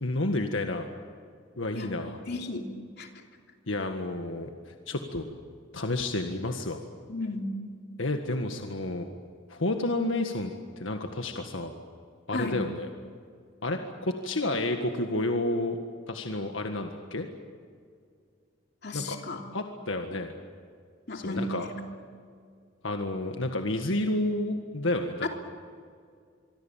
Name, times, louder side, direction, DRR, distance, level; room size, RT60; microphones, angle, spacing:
voice 1, 0.0-0.9 1.6-2.2 3.7-4.5 4.9-5.3 5.7-6.8 8.0-9.1 9.5-11.7 12.3-12.9 13.6-15.8 16.1-17.3 18.9-19.2 19.5-20.3 21.1-21.7 22.8-25.3, left 2 dB, 80° left, 4 dB, 1.8 m, -30 dB
voice 2, 1.7-2.7 3.0-3.1 7.1-7.5 12.3-12.6 18.8-19.4 21.1-21.7 25.2-25.3, left 2 dB, 55° left, 3 dB, 3.1 m, -34 dB
26.0 x 24.0 x 7.4 m, 2.2 s
head